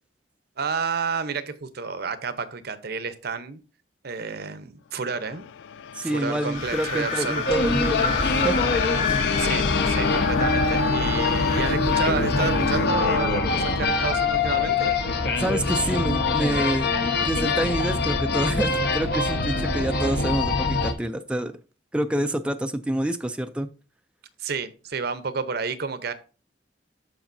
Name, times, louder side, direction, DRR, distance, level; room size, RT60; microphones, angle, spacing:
voice 1, 0.6-3.6 4.0-5.5 6.0-7.6 9.4-14.9 24.4-26.1, right 5 dB, 60° right, 12 dB, 0.8 m, -30 dB
sound 1, 5.1-15.4, left 7 dB, 80° left, 0.3 m, -29 dB
voice 2, 5.9-8.6 9.0-9.2 15.4-16.9 17.2-21.5 21.9-23.7, right 1 dB, 5° right, 7 dB, 0.4 m, -27 dB
Wind, 6.5-12.9, left 4 dB, 40° left, 1.2 m, -32 dB
sound 2, 7.5-20.9, left 3 dB, 60° left, 1.1 m, -24 dB
13.0 x 4.9 x 2.6 m, 0.36 s
head